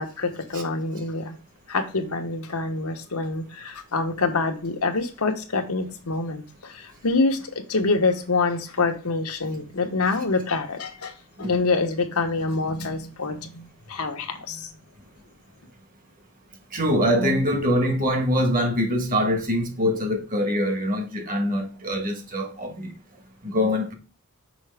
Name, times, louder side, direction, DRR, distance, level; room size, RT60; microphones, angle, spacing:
voice 1, 0.0-1.4 1.7-11.1 11.5-14.7, left 3 dB, 90° left, 1.1 m, -26 dB
voice 2, 16.7-22.9 23.4-23.9, equal, 40° right, 1.4 m, -24 dB
6.1 x 4.8 x 3.4 m
head